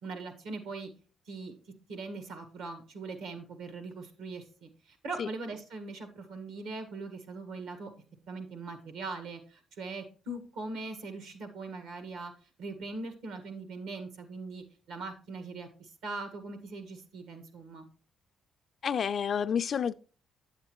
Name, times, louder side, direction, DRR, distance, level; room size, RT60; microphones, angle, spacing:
voice 1, 0.0-0.9 1.3-1.5 1.9-7.9 8.3-12.3 12.6-17.9, right 3 dB, 85° right, 1.5 m, -41 dB
voice 2, 18.8-19.9, left 7 dB, 55° left, 0.3 m, -29 dB
8.3 x 8.1 x 3.0 m
cardioid pair, 90°, 0 cm